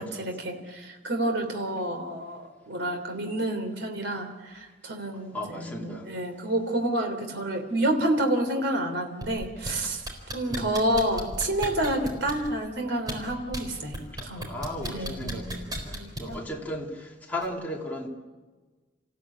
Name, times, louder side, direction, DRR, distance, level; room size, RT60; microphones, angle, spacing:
voice 1, 0.2-10.0 10.3-14.5 14.8-15.5 15.9-16.4, right 1 dB, 75° right, 4 dB, 3.4 m, -29 dB
voice 2, 5.3-6.1 10.5-10.8 14.1-18.1, left 1 dB, 10° left, -2 dB, 3.0 m, -36 dB
sound 1, 9.2-9.7 10.0-12.5 13.0-13.6 13.9-16.4 17.4-17.5, equal, 20° right, 4.2 m, -34 dB
28.0 x 16.0 x 8.7 m, 1.3 s
head